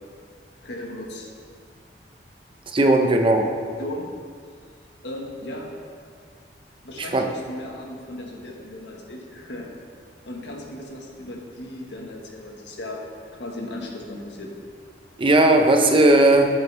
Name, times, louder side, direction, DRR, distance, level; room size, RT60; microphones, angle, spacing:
voice 1, 0.6-1.3 3.8-4.1 5.0-5.7 6.8-9.7 10.3-13.0 13.3-14.5, left 1 dB, 75° left, -1 dB, 1.5 m, -36 dB
voice 2, 2.7-3.5 7.0-7.3 15.2-16.5, right 1 dB, 30° right, 3 dB, 0.8 m, -17 dB
11.0 x 8.0 x 3.4 m, 2.1 s
head